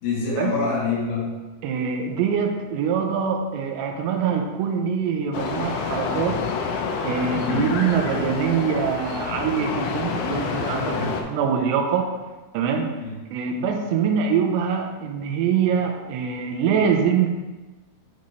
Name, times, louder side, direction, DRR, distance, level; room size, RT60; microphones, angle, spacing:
voice 1, 0.0-1.4 7.4-7.7 10.9-11.2 13.0-13.1, left 4 dB, 55° left, -8 dB, 3.3 m, -26 dB
voice 2, 1.6-6.4 7.0-12.1 12.5-12.9 13.3-17.3, right 7 dB, 85° right, 2 dB, 2.9 m, -24 dB
sound 1, 5.3-11.2, left 5 dB, 85° left, 2.9 m, -28 dB
9.2 x 4.3 x 3.1 m, 1.1 s
omnidirectional pair, 5.0 m